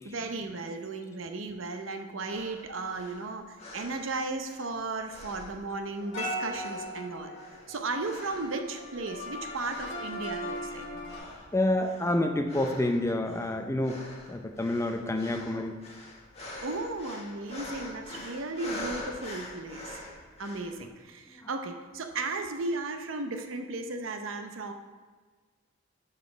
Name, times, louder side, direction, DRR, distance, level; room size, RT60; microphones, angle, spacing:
voice 1, 0.0-7.3 7.7-10.9 16.6-20.0 20.4-24.7, right 3 dB, 75° right, 6 dB, 0.7 m, -35 dB
sound 1, 2.3-4.7 5.1-6.2 6.5-8.6 8.9-9.3 9.6-10.8 11.0-20.8, left 1 dB, 35° left, 1.4 m, -45 dB
sound 2, 6.0-11.2, left 1 dB, 70° left, 1.4 m, -38 dB
voice 2, 11.5-14.0 14.3-15.8 21.4-21.5, left 1 dB, 15° left, 5 dB, 0.5 m, -28 dB
6.1 x 5.5 x 5.1 m, 1.4 s
head